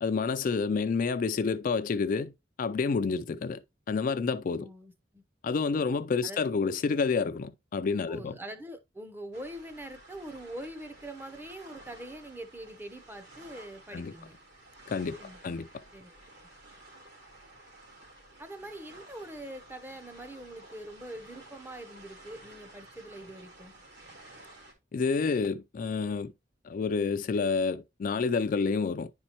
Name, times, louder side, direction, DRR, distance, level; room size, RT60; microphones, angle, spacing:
voice 1, 0.0-2.3 2.6-3.6 3.9-4.7 5.4-8.3 13.9-14.1 14.9-15.7 24.9-26.3 26.6-29.1, left 4 dB, 45° left, 0.3 m, -29 dB
voice 2, 4.6-5.2 5.7-5.9 6.2-6.4 8.1-14.4 15.2-15.4 15.9-16.2 18.4-23.7, right 1 dB, 10° right, 0.6 m, -43 dB
sound 1, 9.3-24.7, right 2 dB, 65° right, 2.5 m, -53 dB
9.7 x 4.3 x 2.9 m
head